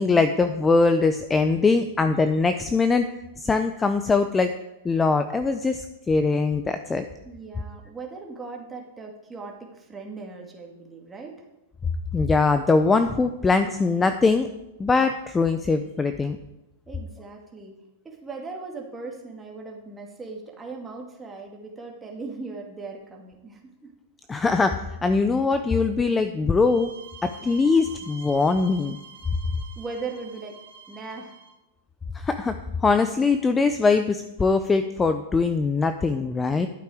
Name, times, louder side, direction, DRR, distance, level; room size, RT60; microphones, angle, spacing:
voice 1, 0.0-3.1 3.4-4.5 4.8-7.0 12.1-14.5 14.8-16.4 24.3-26.9 27.2-29.0 32.1-32.5 32.8-36.7, left 4 dB, 10° left, 9 dB, 0.5 m, -22 dB
voice 2, 7.2-11.3 16.9-17.7 18.0-23.9 29.8-30.6 30.9-31.4, right 4 dB, 10° right, 0 dB, 2.1 m, -38 dB
sound 1, 26.6-31.6, right 5 dB, 90° right, 2.4 m, -46 dB
11.5 x 8.2 x 5.0 m, 0.98 s
hypercardioid pair, 140°, 0 cm